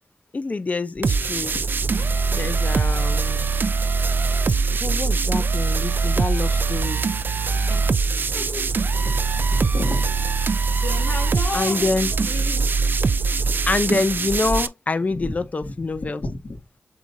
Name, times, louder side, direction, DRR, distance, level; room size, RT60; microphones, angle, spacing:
voice 1, 0.3-1.6 2.3-3.5 4.5-7.0 11.5-12.1 13.7-16.2, left 3 dB, 40° left, 0.5 m, -26 dB
sound 1, 1.0-14.7, right 4 dB, 55° right, 0.4 m, -22 dB
voice 2, 8.3-10.1 10.7-11.9 12.2-12.7 15.1-15.3 15.6-15.7 16.0-16.6, left 2 dB, 60° left, 2.1 m, -32 dB
7.5 x 2.6 x 2.7 m
wide cardioid pair, 75°, 4 cm